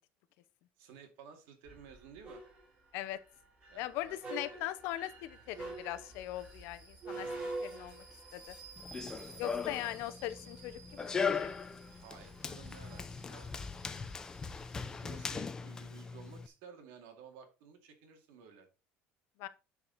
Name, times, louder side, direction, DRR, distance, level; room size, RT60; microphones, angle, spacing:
voice 1, 0.8-2.4 3.7-4.2 4.5-4.6 11.9-13.5 15.0-18.7, right 6 dB, 80° right, 2.3 m, -54 dB
sound 1, 1.7-15.2, right 2 dB, 25° right, 4.1 m, -48 dB
voice 2, 3.7-8.0 8.3-8.6 9.4-11.5 19.4-19.5, left 14 dB, 65° left, 0.8 m, -40 dB
Run, 8.8-16.5, left 5 dB, 15° left, 0.5 m, -39 dB
10.0 x 4.7 x 4.1 m
cardioid pair, 180°, 4 cm